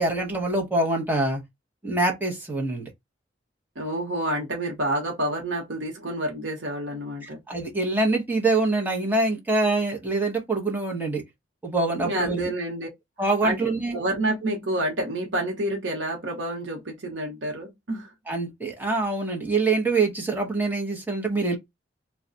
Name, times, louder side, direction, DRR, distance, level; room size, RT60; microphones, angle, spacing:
voice 1, 0.0-1.4 1.8-2.9 7.2-11.2 11.6-12.5 13.2-14.0 18.3-21.6, right 2 dB, 10° right, 0.8 m, -25 dB
voice 2, 3.8-7.4 12.0-12.9 13.4-13.6 13.9-18.1, right 1 dB, 80° right, 0.9 m, -28 dB
2.3 x 2.2 x 3.8 m
head